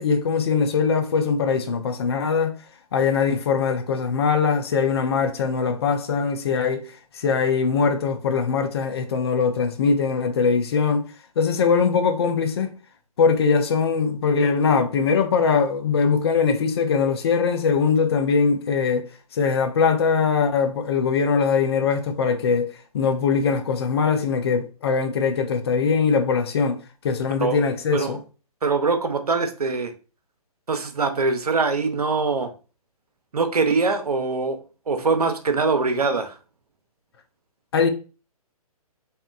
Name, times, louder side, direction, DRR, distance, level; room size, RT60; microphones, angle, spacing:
voice 1, 0.0-2.6 2.9-6.8 7.1-11.1 11.4-12.7 13.2-26.8 27.0-28.2 37.7-37.9, left 5 dB, 40° left, 0.4 m, -21 dB
voice 2, 28.6-29.9 30.7-32.5 33.3-34.6 34.9-36.4, right 4 dB, 80° right, 0.5 m, -23 dB
2.8 x 2.1 x 2.4 m
figure-of-eight pair, 130°, 19 cm